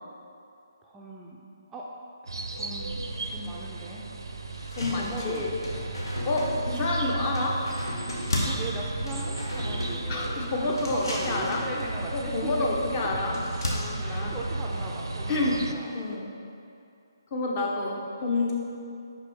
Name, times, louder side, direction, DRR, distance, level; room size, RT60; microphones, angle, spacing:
voice 1, 0.8-1.4 1.7-1.8 2.2-4.0 4.9-5.5 8.4-10.5 10.9-12.5 14.0-15.9, right 2 dB, 10° right, -4 dB, 0.4 m, -39 dB
sound 1, 2.3-15.7, right 2 dB, 80° right, 0.5 m, -34 dB
sound 2, 3.5-3.6 4.0-4.1 4.5-16.1, left 1 dB, 65° left, 1.1 m, -39 dB
voice 2, 4.8-5.5 6.3-7.6 10.1-11.6 12.1-14.3 15.3-15.6 15.9-16.3 17.3-18.5, left 2 dB, 30° left, -1 dB, 0.8 m, -29 dB
sound 3, 5.6-7.1 7.3-8.8 9.1-10.5 10.8-12.1, equal, 80° left, 1.4 m, -38 dB
5.7 x 5.4 x 3.5 m, 2.6 s
figure-of-eight pair, 145°, 2 cm